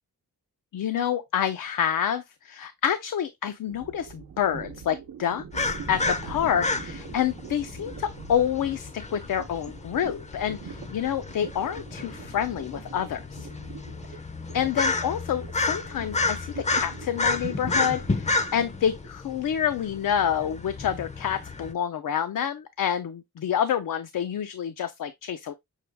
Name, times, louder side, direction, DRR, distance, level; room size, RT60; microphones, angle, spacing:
voice 1, 0.7-13.5 14.5-25.5, left 9 dB, 70° left, 0.5 m, -28 dB
sound 1, 3.7-19.1, right 6 dB, 90° right, 0.7 m, -43 dB
sound 2, 5.5-21.7, left 3 dB, 20° left, 0.5 m, -31 dB
6.4 x 2.3 x 3.3 m
wide cardioid pair, 125°, 34 cm